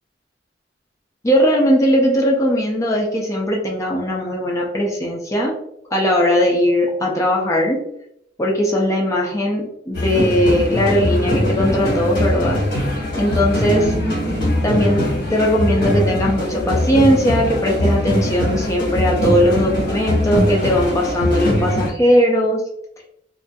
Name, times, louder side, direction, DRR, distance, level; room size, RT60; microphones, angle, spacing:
voice 1, 1.2-5.5 5.9-7.8 8.4-12.6 13.2-13.9 14.6-15.0 15.3-22.6, equal, 20° left, -2 dB, 0.5 m, -18 dB
sound 1, 9.9-21.9, left 1 dB, 60° left, 1.0 m, -21 dB
Bass guitar, 13.6-17.4, right 2 dB, 70° right, 0.6 m, -31 dB
2.4 x 2.2 x 2.5 m, 0.75 s
head